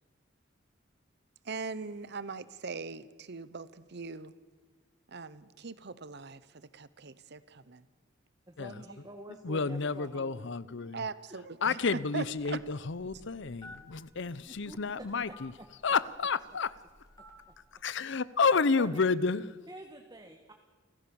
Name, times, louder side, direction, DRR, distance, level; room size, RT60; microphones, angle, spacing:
voice 1, 1.4-4.3 5.1-7.9 10.9-11.8 12.1-12.6, right 4 dB, 60° right, 16 dB, 0.9 m, -41 dB
voice 2, 8.5-10.5 14.5-15.1 18.8-19.1 19.7-20.5, right 1 dB, 20° right, 4 dB, 1.5 m, -47 dB
voice 3, 9.4-11.0 11.6-15.5 15.8-16.7 17.7-19.5, left 4 dB, 65° left, 18 dB, 0.8 m, -30 dB
Telephone, 12.3-17.6, left 1 dB, 20° left, 3.2 m, -55 dB
29.0 x 15.0 x 7.1 m, 1.4 s
head